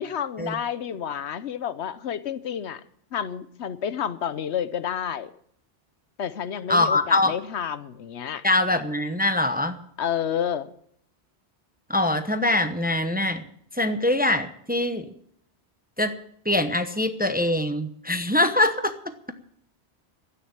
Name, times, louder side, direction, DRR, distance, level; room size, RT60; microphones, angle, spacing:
voice 1, 0.0-2.8 3.1-5.3 6.2-8.4 10.0-10.7, left 8 dB, 75° left, 14 dB, 1.1 m, -30 dB
voice 2, 6.7-7.3 8.4-9.8 11.9-13.4 13.8-15.1 16.0-16.1 16.4-19.0, left 2 dB, 10° right, 9 dB, 0.8 m, -23 dB
13.0 x 9.4 x 8.9 m, 0.66 s
omnidirectional pair, 1.1 m